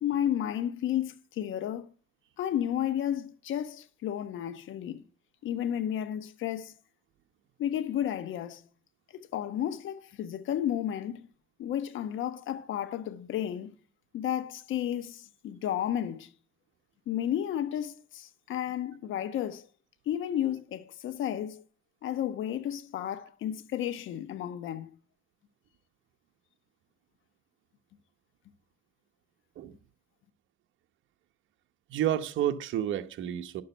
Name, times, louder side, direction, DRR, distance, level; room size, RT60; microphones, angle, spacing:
voice 1, 0.0-1.9 2.4-5.0 5.4-6.7 7.6-8.6 9.1-11.3 11.6-13.7 14.1-16.3 17.1-19.7 20.1-21.6 22.0-24.9, left 10 dB, 80° left, 1.1 m, -32 dB
voice 2, 31.9-33.6, right 11 dB, 75° right, 1.0 m, -30 dB
11.5 x 6.7 x 6.7 m
cardioid pair, 90°, 20 cm